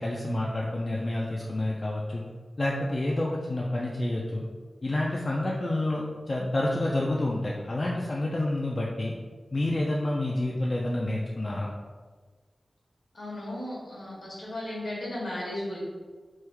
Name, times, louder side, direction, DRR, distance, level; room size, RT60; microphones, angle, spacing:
voice 1, 0.0-2.2 2.6-4.4 4.8-9.1 9.5-11.7, left 1 dB, 35° left, -3 dB, 0.3 m, -28 dB
voice 2, 13.1-15.8, left 1 dB, 70° left, -5 dB, 1.1 m, -35 dB
3.1 x 2.2 x 3.3 m, 1.5 s
wide cardioid pair, 110°, 0 cm